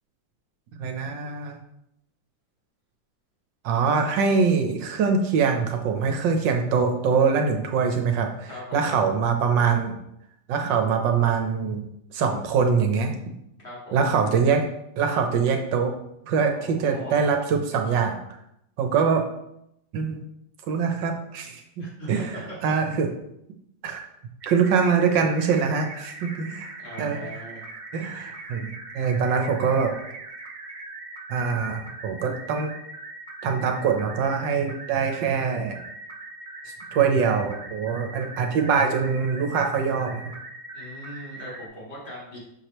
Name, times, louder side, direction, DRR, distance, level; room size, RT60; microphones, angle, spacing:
voice 1, 0.8-1.6 3.6-10.0 10.5-11.8 12.1-13.3 13.9-14.6 15.0-15.9 16.3-18.2 18.8-19.3 19.9-20.2 20.7-22.2 22.6-23.1 23.8-24.1 24.4-26.7 27.0-27.2 27.9-30.0 31.3-32.7 33.4-35.8 36.9-40.4, right 5 dB, 75° right, 4 dB, 1.5 m, -23 dB
voice 2, 8.5-8.9 13.6-14.1 16.5-17.2 21.8-22.7 26.8-27.6 40.7-42.4, equal, 30° left, -6 dB, 2.4 m, -40 dB
sound 1, 24.4-41.7, right 2 dB, 60° right, 0.4 m, -41 dB
7.2 x 4.8 x 3.0 m, 0.79 s
omnidirectional pair, 2.0 m